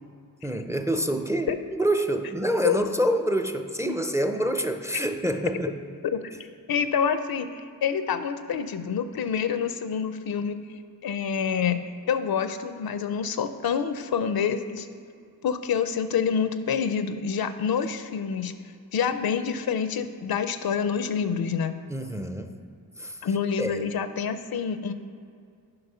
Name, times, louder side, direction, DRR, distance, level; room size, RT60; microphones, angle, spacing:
voice 1, 0.4-5.8 21.9-22.6 23.0-23.2 23.6-23.9, equal, 10° right, 7 dB, 0.4 m, -27 dB
voice 2, 6.7-10.6 11.0-11.8 12.1-14.9 15.4-18.5 18.9-21.8 23.2-24.9, left 7 dB, 75° left, 10 dB, 0.5 m, -27 dB
8.0 x 5.4 x 5.5 m, 2.3 s
wide cardioid pair, 105°, 36 cm